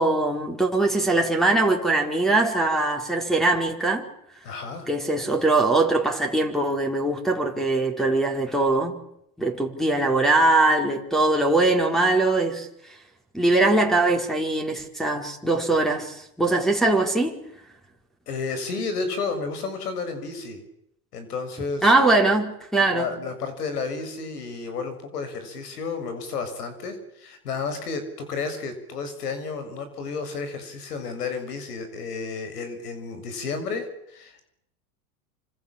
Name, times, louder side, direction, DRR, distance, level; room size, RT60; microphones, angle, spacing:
voice 1, 0.0-4.1 4.9-9.0 9.4-12.7 13.3-17.4 21.8-23.1, right 2 dB, ahead, 4.8 m, -21 dB
voice 2, 4.4-4.9 18.3-20.6 21.1-21.9 22.2-22.4 22.9-34.5, left 4 dB, 80° left, 6.6 m, -32 dB
28.5 x 26.5 x 7.5 m
hypercardioid pair, 100°, 45 cm